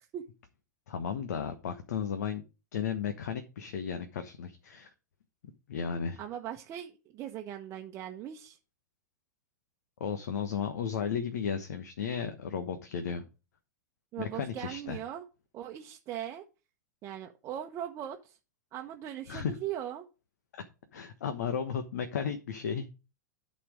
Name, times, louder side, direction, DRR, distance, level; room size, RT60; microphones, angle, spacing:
voice 1, 0.9-2.4 2.7-4.9 5.7-6.2 10.0-13.2 14.2-15.0 19.3-19.6 20.5-20.6 20.9-23.0, left 7 dB, 65° left, 8 dB, 1.2 m, -34 dB
voice 2, 6.2-8.6 14.1-15.2 15.5-16.4 17.0-18.4 18.7-20.1, right 11 dB, 30° right, 3 dB, 1.1 m, -39 dB
11.5 x 4.4 x 5.1 m, 0.30 s
figure-of-eight pair, 100°, 10 cm